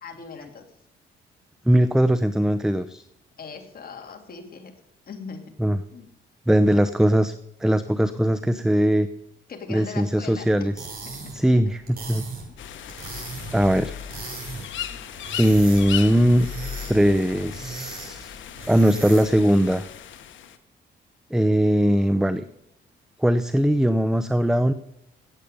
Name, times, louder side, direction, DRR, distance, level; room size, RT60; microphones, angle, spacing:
voice 1, 0.0-0.7 3.4-4.7 5.1-5.4 5.9-6.0 9.5-10.7 11.0-11.7, left 5 dB, 50° left, 4 dB, 2.8 m, -40 dB
voice 2, 1.7-3.0 5.6-5.8 6.5-7.3 7.6-9.1 9.7-10.9 11.3-12.2 13.5-14.0 15.4-16.5 16.9-18.4 18.7-19.8 21.3-22.4 23.2-24.7, equal, 5° right, 12 dB, 0.7 m, -20 dB
sound 1, 10.6-19.5, right 4 dB, 50° right, 6.6 m, -39 dB
sound 2, 12.6-20.6, left 9 dB, 75° left, 1.4 m, -36 dB
17.5 x 8.5 x 5.2 m, 0.79 s
cardioid pair, 90°, 20 cm